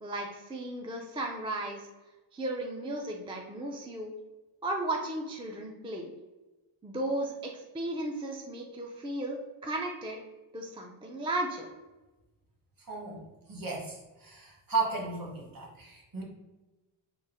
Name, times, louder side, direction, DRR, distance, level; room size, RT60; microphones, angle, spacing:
voice 1, 0.0-1.9 2.3-4.1 4.6-6.1 6.8-10.2 10.5-11.7, right 1 dB, 15° right, 1 dB, 0.3 m, -35 dB
voice 2, 12.9-13.2 13.5-16.2, right 4 dB, 45° right, -1 dB, 1.2 m, -35 dB
3.7 x 2.4 x 4.1 m, 1.1 s
wide cardioid pair, 140°, 47 cm